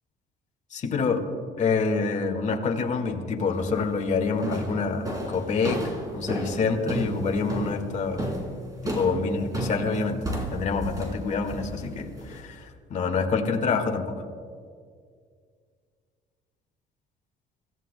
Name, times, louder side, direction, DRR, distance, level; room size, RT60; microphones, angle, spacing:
voice 1, 0.7-1.2 1.6-5.8 6.1-8.3 8.8-10.2 10.5-14.2, left 4 dB, 45° left, 3 dB, 1.7 m, -27 dB
sound 1, 3.6-3.9 4.4-12.4, right 1 dB, 20° right, 3.2 m, -33 dB
29.0 x 15.5 x 2.2 m, 2.1 s
cardioid pair, 110°, 17 cm